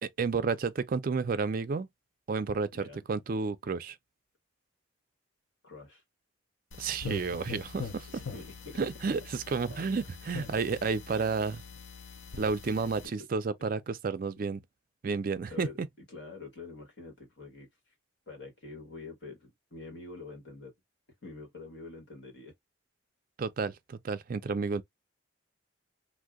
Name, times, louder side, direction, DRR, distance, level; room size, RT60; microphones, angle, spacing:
voice 1, 0.0-1.9 2.3-4.0 6.8-8.1 8.8-11.6 12.4-14.6 15.0-15.9 23.4-24.8, right 4 dB, 45° right, 0.4 m, -31 dB
voice 2, 2.7-3.0 5.6-6.0 8.1-8.8 9.7-9.8 11.1-11.3 13.0-13.3 15.5-17.9 18.3-20.7 21.2-22.5, left 3 dB, 60° left, 1.3 m, -46 dB
sound 1, 6.7-13.1, left 4 dB, 80° left, 0.7 m, -43 dB
2.7 x 2.1 x 3.4 m
head